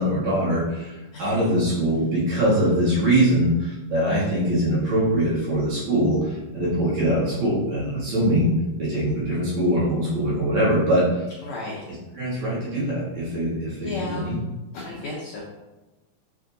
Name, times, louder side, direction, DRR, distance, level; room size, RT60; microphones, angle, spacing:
voice 1, 0.0-8.5 8.8-11.3 12.1-14.4, right 1 dB, 65° right, -8 dB, 1.9 m, -22 dB
voice 2, 11.4-11.8 13.8-14.3 14.7-15.4, left 2 dB, 85° left, -4 dB, 1.6 m, -33 dB
7.1 x 2.6 x 2.6 m, 1.1 s
omnidirectional pair, 4.2 m